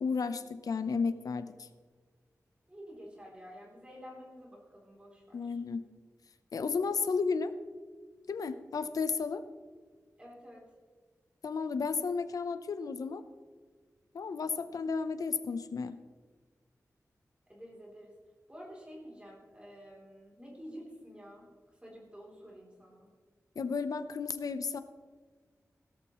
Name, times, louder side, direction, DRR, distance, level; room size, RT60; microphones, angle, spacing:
voice 1, 0.0-1.7 5.3-5.8 6.5-7.5 8.3-9.4 11.4-13.2 14.1-16.0 23.6-24.8, left 5 dB, 90° left, 11 dB, 0.7 m, -33 dB
voice 2, 2.7-5.6 10.2-10.6 14.4-14.5 17.5-18.1 18.5-21.5 21.8-23.1, equal, 20° right, -3 dB, 3.2 m, -50 dB
16.0 x 13.5 x 3.1 m, 1.5 s
wide cardioid pair, 115°, 6 cm